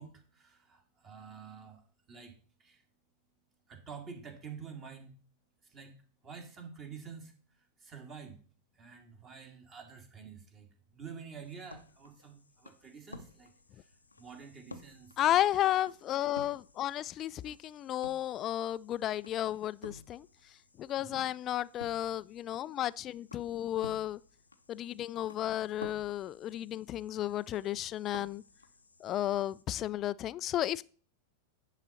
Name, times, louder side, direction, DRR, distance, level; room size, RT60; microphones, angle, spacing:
voice 1, 0.0-1.8 2.1-2.3 2.6-2.8 3.7-5.2 5.7-5.9 6.2-7.3 7.8-8.3 8.8-10.7 10.9-13.5 14.2-15.1 21.0-21.2, right 6 dB, 30° right, 2.0 m, -48 dB
sound 1, 11.4-29.6, left 3 dB, 80° left, 0.7 m, -53 dB
voice 2, 15.2-20.3 20.8-24.2 24.7-28.4 29.0-30.8, left 12 dB, 30° left, 0.3 m, -33 dB
10.0 x 4.0 x 5.8 m
figure-of-eight pair, 90°, 0 cm